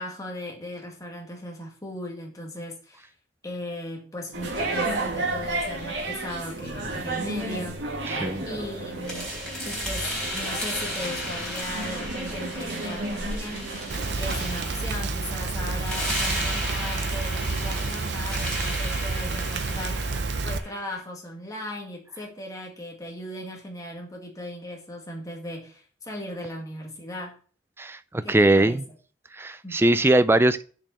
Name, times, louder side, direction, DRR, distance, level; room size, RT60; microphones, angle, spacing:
voice 1, 0.0-3.1 3.4-7.8 8.5-9.3 9.6-13.8 14.2-20.2 20.4-27.4 28.2-29.0 29.6-29.8, left 1 dB, 20° left, 2.0 m, -37 dB
sound 1, 4.3-14.4, right 2 dB, 85° right, 2.3 m, -32 dB
sound 2, 9.0-21.0, equal, 5° left, 3.8 m, -34 dB
Rain, 13.9-20.6, right 3 dB, 70° right, 0.7 m, -29 dB
voice 2, 27.8-28.8 29.4-30.6, right 1 dB, 15° right, 0.4 m, -21 dB
7.0 x 5.3 x 6.7 m
head